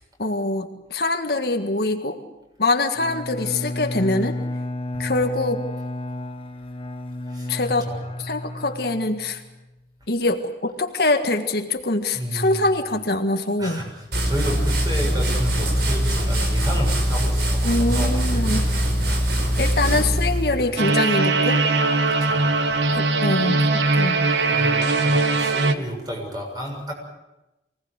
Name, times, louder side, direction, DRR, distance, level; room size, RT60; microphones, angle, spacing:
voice 1, 0.2-2.2 2.6-4.3 5.0-5.6 7.5-7.9 8.2-9.4 10.1-13.8 17.6-18.7 19.6-21.6 22.9-24.2, left 2 dB, 60° left, 5 dB, 1.7 m, -24 dB
Bowed string instrument, 2.9-9.6, left 1 dB, 30° left, 1.1 m, -32 dB
voice 2, 12.1-12.7 13.6-18.9 19.2-19.6 20.5-20.7 22.1-22.5 24.5-26.9, equal, 25° right, 0 dB, 7.0 m, -32 dB
sound 1, 14.1-20.6, equal, 70° right, 4.8 m, -22 dB
sound 2, 20.8-25.7, right 3 dB, 85° right, 1.2 m, -20 dB
24.0 x 18.5 x 8.2 m, 0.97 s
head